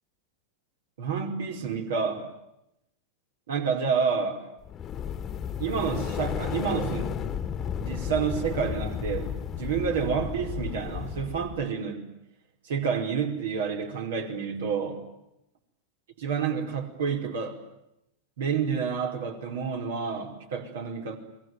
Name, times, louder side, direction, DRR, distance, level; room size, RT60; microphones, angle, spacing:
voice 1, 1.0-2.3 3.5-4.4 5.6-7.2 7.8-12.0 12.6-15.0 16.2-17.6 18.4-21.2, right 6 dB, 60° right, 4 dB, 4.9 m, -29 dB
sound 1, 4.6-11.6, left 8 dB, 25° left, 1.6 m, -33 dB
29.0 x 22.0 x 9.3 m, 0.84 s
figure-of-eight pair, 90°, 0 cm